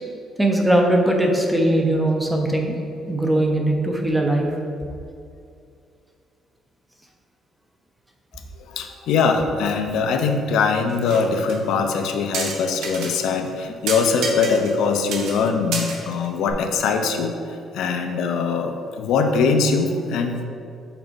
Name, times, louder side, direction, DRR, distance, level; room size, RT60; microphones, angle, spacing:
voice 1, 0.4-2.8 3.1-4.5, right 1 dB, 5° right, 1 dB, 0.6 m, -20 dB
voice 2, 8.7-17.4 17.7-20.4, left 5 dB, 70° left, 5 dB, 0.5 m, -22 dB
sound 1, 10.9-11.2 11.5-11.6 12.3-13.1 13.5-13.6 13.9-14.9 15.1-15.4 15.7-16.5, right 4 dB, 70° right, 1.0 m, -29 dB
6.0 x 4.1 x 5.1 m, 2.4 s
cardioid pair, 175°, 0 cm